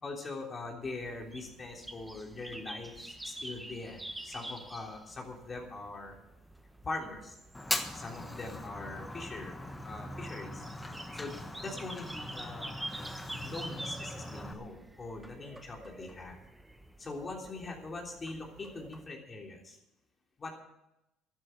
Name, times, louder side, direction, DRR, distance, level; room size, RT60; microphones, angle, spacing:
voice 1, 0.0-6.2 6.8-7.3 7.9-9.5 9.8-10.6 11.1-12.8 13.3-16.4 17.0-19.8 20.4-20.6, left 3 dB, 30° left, 1 dB, 3.3 m, -42 dB
sound 1, 0.8-19.1, right 1 dB, 10° right, 1.2 m, -47 dB
Fire, 7.5-14.5, left 1 dB, 10° left, 1.4 m, -40 dB
Cricket, 10.3-11.4 11.6-11.8 12.0-13.5 13.9-14.4, right 4 dB, 30° right, 3.0 m, -55 dB
12.5 x 10.5 x 7.9 m, 0.88 s
cardioid pair, 100°, 0 cm